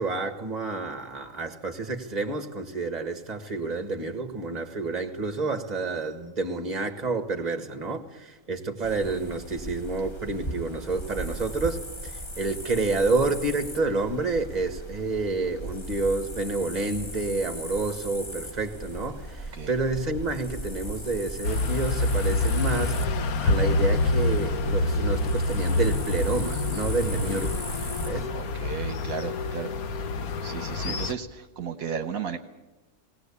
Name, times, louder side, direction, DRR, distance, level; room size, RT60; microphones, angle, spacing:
voice 1, 0.0-23.0 23.4-27.6 28.0-28.3 30.9-31.0, right 3 dB, 30° right, 1.8 m, -29 dB
sound 1, 8.8-28.3, right 1 dB, 20° left, 1.1 m, -38 dB
sound 2, 21.4-31.1, left 2 dB, 75° left, 1.4 m, -27 dB
sound 3, 26.7-27.9, right 1 dB, 45° left, 2.0 m, -35 dB
voice 2, 27.7-29.7 30.4-32.4, right 6 dB, 70° right, 1.4 m, -35 dB
19.0 x 18.5 x 8.5 m
omnidirectional pair, 1.6 m